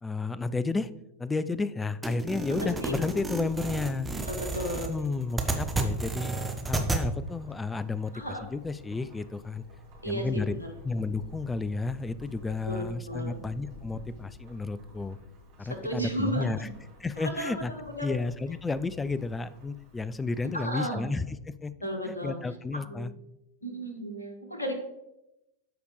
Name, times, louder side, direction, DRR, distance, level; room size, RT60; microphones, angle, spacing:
voice 1, 0.0-0.9 1.2-4.2 4.7-8.1 8.5-9.6 10.0-10.5 10.8-15.2 15.6-16.7 17.0-17.7 18.0-21.7 22.0-23.1, left 3 dB, 10° left, 16 dB, 0.3 m, -32 dB
sound 1, 2.0-7.0, right 3 dB, 10° right, 1.0 m, -32 dB
voice 2, 2.5-2.9 3.3-3.5 4.3-4.9 8.1-8.5 10.0-10.7 12.6-13.4 15.6-16.7 17.2-18.1 20.5-21.1 21.8-22.4 22.7-23.1 23.6-24.7, equal, 80° left, 3 dB, 1.5 m, -34 dB
Thunderstorm / Rain, 2.5-20.6, left 2 dB, 45° right, 2.7 m, -49 dB
12.5 x 4.9 x 3.2 m, 0.89 s
figure-of-eight pair, 90°, 0 cm